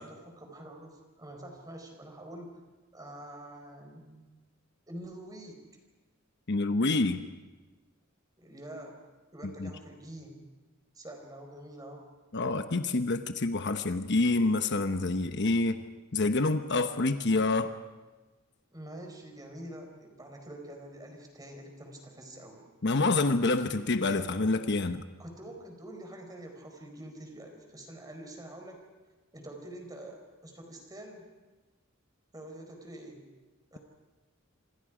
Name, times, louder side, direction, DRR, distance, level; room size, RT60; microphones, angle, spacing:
voice 1, 0.0-2.5 2.9-4.3 4.9-5.6 8.4-9.0 9.3-10.4 10.9-12.0 18.7-22.6 25.2-28.8 29.3-31.3 32.3-33.2 33.7-33.8, right 1 dB, 20° right, 3 dB, 4.7 m, -46 dB
voice 2, 6.5-7.2 9.6-9.7 12.3-15.8 16.1-17.7 22.8-25.0, left 3 dB, 55° left, 9 dB, 1.0 m, -27 dB
27.5 x 26.0 x 5.0 m, 1.2 s
head